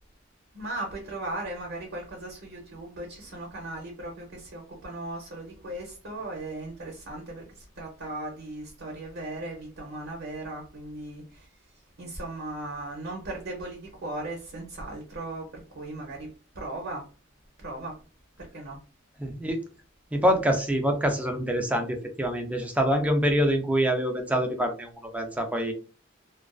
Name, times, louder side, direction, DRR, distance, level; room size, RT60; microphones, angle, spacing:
voice 1, 0.5-11.5 12.0-17.0 17.6-18.0 18.4-18.8, right 2 dB, 60° right, 1 dB, 0.6 m, -37 dB
voice 2, 19.2-19.6 20.1-25.7, equal, 5° right, 4 dB, 0.4 m, -25 dB
2.4 x 2.2 x 2.3 m, 0.36 s
head